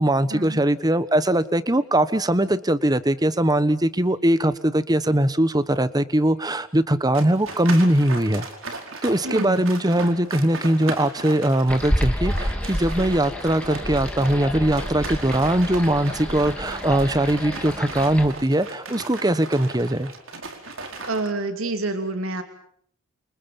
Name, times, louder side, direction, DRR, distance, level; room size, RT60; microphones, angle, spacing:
voice 1, 0.0-8.5 9.0-20.1, right 1 dB, 20° right, 14 dB, 1.2 m, -21 dB
sound 1, 7.1-21.3, right 3 dB, 70° right, 4.9 m, -36 dB
voice 2, 9.2-9.6 21.1-22.4, right 2 dB, 90° right, 7 dB, 2.8 m, -27 dB
sound 2, 11.7-18.3, equal, 5° left, 3.5 m, -29 dB
29.0 x 28.0 x 5.5 m, 0.62 s
head